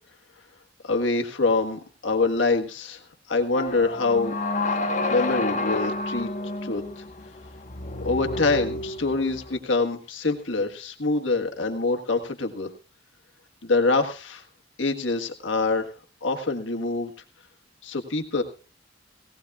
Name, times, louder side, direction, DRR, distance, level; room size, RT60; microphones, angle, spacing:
voice 1, 0.8-3.0 3.3-4.3 5.1-6.3 6.6-7.0 8.0-12.7 13.6-14.4 14.8-15.9 16.2-17.1 17.8-18.4, left 3 dB, 75° left, 4 dB, 1.5 m, -25 dB
sound 1, 3.5-9.5, left 2 dB, 40° left, 1.3 m, -29 dB
18.5 x 17.0 x 2.4 m, 0.35 s
head